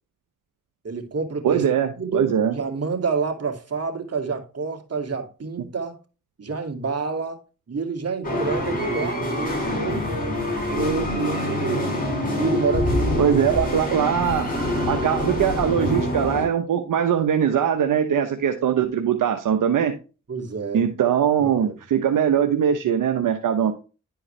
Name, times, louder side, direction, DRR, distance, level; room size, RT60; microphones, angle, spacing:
voice 1, 0.8-1.6 2.0-6.0 6.4-10.1 10.7-12.0 12.3-13.3 13.8-13.9 20.3-20.9 21.4-21.7, right 4 dB, 50° right, 2.4 m, -28 dB
voice 2, 1.4-2.5 13.2-14.5 14.9-20.0 20.7-23.7, right 8 dB, 80° right, 1.0 m, -21 dB
sound 1, 8.2-16.5, left 1 dB, 25° left, 5.2 m, -25 dB
11.0 x 4.7 x 3.2 m
cardioid pair, 50°, 32 cm